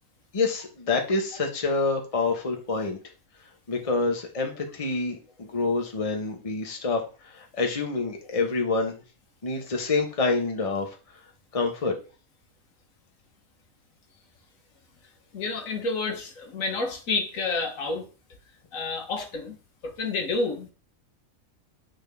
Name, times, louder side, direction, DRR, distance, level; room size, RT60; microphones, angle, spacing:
voice 1, 0.3-3.0 3.7-9.0 9.4-10.9 11.5-11.9, left 3 dB, 25° left, 1.1 m, -27 dB
voice 2, 15.3-18.1 18.7-19.6 19.8-20.7, left 3 dB, 70° left, 1.5 m, -29 dB
8.8 x 3.9 x 3.5 m
omnidirectional pair, 1.5 m